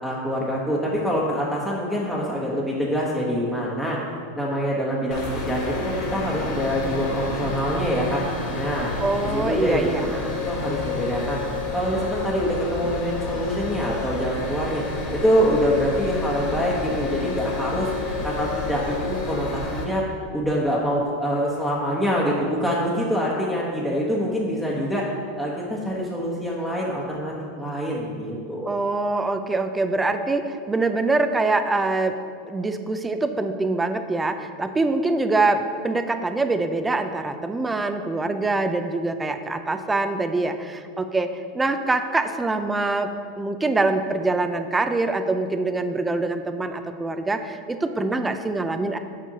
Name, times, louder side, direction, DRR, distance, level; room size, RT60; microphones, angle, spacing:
voice 1, 0.0-4.0 4.4-8.2 8.5-8.9 9.3-9.9 10.4-11.4 11.7-14.8 15.1-17.9 18.2-20.0 20.3-25.1 25.4-28.7, equal, ahead, -5 dB, 1.1 m, -25 dB
sound 1, 5.1-19.8, left 3 dB, 60° left, 1.8 m, -30 dB
voice 2, 9.0-10.4 28.6-32.2 32.4-49.0, right 3 dB, 15° right, 8 dB, 0.5 m, -24 dB
8.1 x 7.3 x 2.9 m, 2.2 s
supercardioid pair, 115°, 0 cm